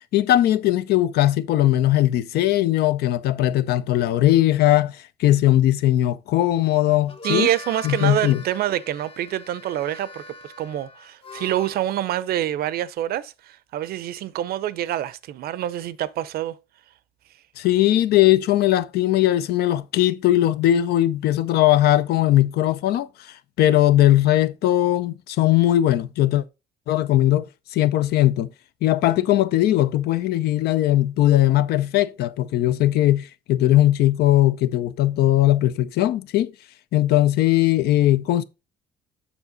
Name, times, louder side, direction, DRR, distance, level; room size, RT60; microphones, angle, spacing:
voice 1, 0.1-7.5 7.8-8.4 17.6-26.4 26.9-27.5 27.7-28.5 28.8-36.5 36.9-38.4, left 14 dB, 70° left, 0.6 m, -19 dB
Harmonica, 7.0-11.9, left 3 dB, 35° left, 0.8 m, -40 dB
voice 2, 7.2-16.6, right 12 dB, 65° right, 0.6 m, -26 dB
7.3 x 5.6 x 3.9 m
cardioid pair, 110°, 17 cm